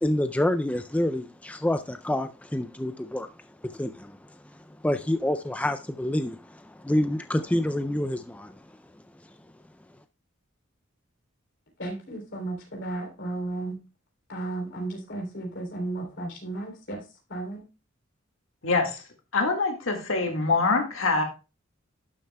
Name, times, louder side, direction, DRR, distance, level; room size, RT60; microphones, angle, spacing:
voice 1, 0.0-3.3 3.6-4.2 4.8-8.5, left 1 dB, 5° left, 8 dB, 0.3 m, -27 dB
voice 2, 11.8-13.8 14.3-17.6, right 2 dB, 60° left, 1 dB, 3.3 m, -34 dB
voice 3, 18.6-19.0 19.3-21.2, left 3 dB, 90° left, 3 dB, 1.8 m, -24 dB
12.0 x 6.9 x 2.2 m, 0.31 s
head